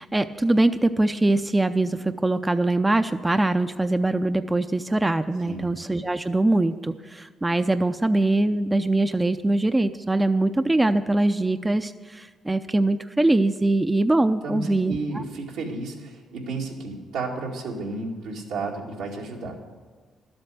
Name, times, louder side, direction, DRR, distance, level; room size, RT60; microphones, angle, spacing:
voice 1, 0.0-15.2, right 2 dB, 15° right, 9 dB, 0.5 m, -22 dB
voice 2, 14.4-19.6, right 3 dB, 85° right, -2 dB, 2.1 m, -32 dB
12.0 x 7.9 x 7.6 m, 1.4 s
supercardioid pair, 70°, 0 cm